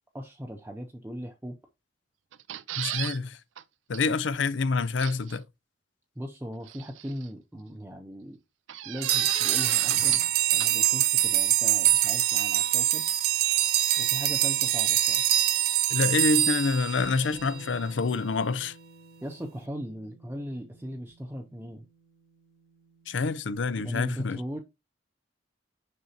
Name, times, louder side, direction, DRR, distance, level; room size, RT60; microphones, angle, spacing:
voice 1, 0.1-1.6 6.2-8.4 8.8-13.1 14.0-15.2 19.2-21.9 23.8-24.6, equal, 10° right, 0.6 m, -38 dB
sound 1, 2.3-3.2 3.6-3.7 3.9-4.0 5.0-5.4 6.7-7.3 8.7-10.3 10.6-10.7, right 13 dB, 90° right, 0.4 m, -35 dB
voice 2, 2.8-3.4 3.9-5.4 15.9-18.7 23.1-24.4, left 4 dB, 75° left, 0.5 m, -27 dB
sound 2, 9.0-17.5, right 13 dB, 55° right, 0.7 m, -24 dB
Bass guitar, 17.3-23.6, right 1 dB, 20° left, 0.9 m, -53 dB
6.5 x 5.3 x 2.9 m
head